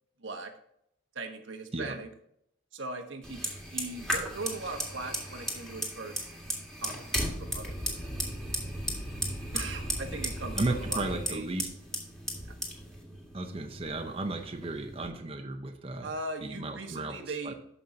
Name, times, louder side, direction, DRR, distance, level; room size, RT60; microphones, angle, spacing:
voice 1, 0.2-0.5 1.1-2.1 2.7-6.3 6.8-8.1 9.5-11.5 16.0-17.5, right 3 dB, 85° right, 5 dB, 1.2 m, -39 dB
Fire, 3.2-15.1, equal, 5° left, 1.9 m, -36 dB
voice 2, 10.6-11.7 13.3-16.1 16.4-17.5, right 2 dB, 30° right, 5 dB, 0.7 m, -34 dB
13.0 x 5.5 x 2.7 m, 0.72 s
head